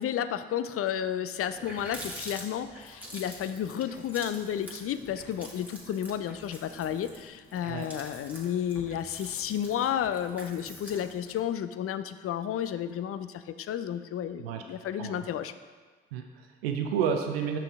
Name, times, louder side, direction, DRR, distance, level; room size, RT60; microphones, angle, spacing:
voice 1, 0.0-15.5, left 9 dB, 50° left, 11 dB, 0.5 m, -32 dB
Water tap faucet, 1.0-1.1 1.4-11.5, equal, 5° right, 1.7 m, -46 dB
voice 2, 16.1-17.6, right 7 dB, 90° right, 5 dB, 0.5 m, -30 dB
6.9 x 5.7 x 3.6 m, 1.4 s
hypercardioid pair, 45°, 29 cm